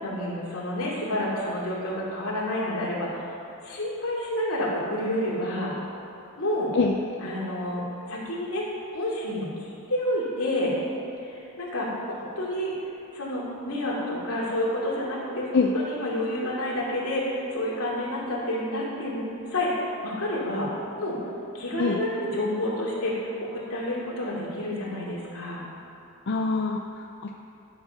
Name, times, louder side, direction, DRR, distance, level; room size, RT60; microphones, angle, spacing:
voice 1, 0.0-3.2 3.6-5.8 6.4-6.7 7.2-7.8 8.1-8.6 8.9-10.7 11.2-12.7 13.1-15.5 15.7-20.7 21.0-21.2 21.5-25.6, left 1 dB, 75° left, -5 dB, 2.8 m, -29 dB
voice 2, 26.3-27.3, left 4 dB, 50° left, 2 dB, 0.5 m, -24 dB
12.5 x 7.2 x 5.6 m, 2.7 s
head